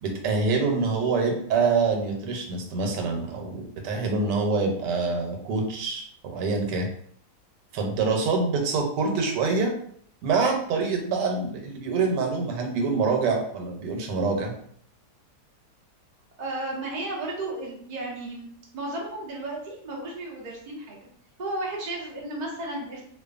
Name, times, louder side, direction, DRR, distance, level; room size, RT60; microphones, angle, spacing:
voice 1, 0.0-6.9 7.7-9.7 10.2-14.5, right 4 dB, 90° right, 2 dB, 1.2 m, -25 dB
voice 2, 16.4-18.5 18.7-21.0 21.4-23.0, right 2 dB, 65° right, -3 dB, 0.4 m, -33 dB
2.5 x 2.4 x 2.4 m, 0.63 s
omnidirectional pair, 1.8 m